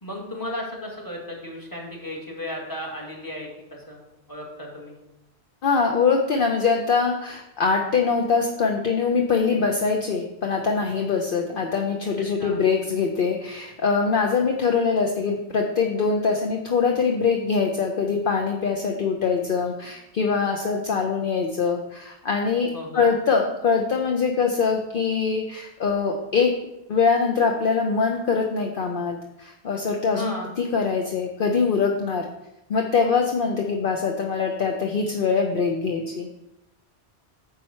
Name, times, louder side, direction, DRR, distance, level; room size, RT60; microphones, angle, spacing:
voice 1, 0.0-3.5 3.9-4.0 4.3-5.0 12.4-12.6 22.7-23.1 30.1-30.5, left 1 dB, 20° left, -1 dB, 2.1 m, -34 dB
voice 2, 5.6-26.6 26.9-32.3 32.7-36.3, left 5 dB, 55° left, 2 dB, 0.9 m, -23 dB
9.9 x 6.4 x 4.4 m, 0.92 s
omnidirectional pair, 1.1 m